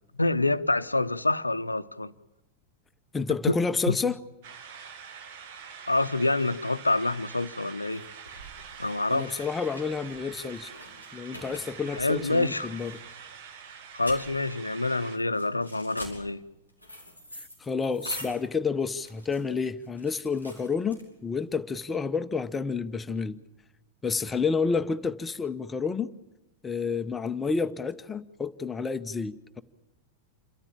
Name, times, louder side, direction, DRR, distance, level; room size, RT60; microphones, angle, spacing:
voice 1, 0.2-2.1 3.5-3.6 3.9-4.0 5.9-8.0 8.8-9.4 11.9-12.7 13.9-16.4, left 2 dB, 85° left, 0.7 m, -27 dB
voice 2, 3.1-4.2 9.1-10.7 11.1-13.0 17.6-23.4 24.0-26.1 26.6-29.6, left 5 dB, 15° left, 0.8 m, -30 dB
sound 1, 4.4-15.2, right 7 dB, 50° right, 1.7 m, -45 dB
sound 2, 7.1-21.5, equal, 90° right, 5.2 m, -45 dB
27.5 x 14.0 x 8.9 m
figure-of-eight pair, 90°, 0 cm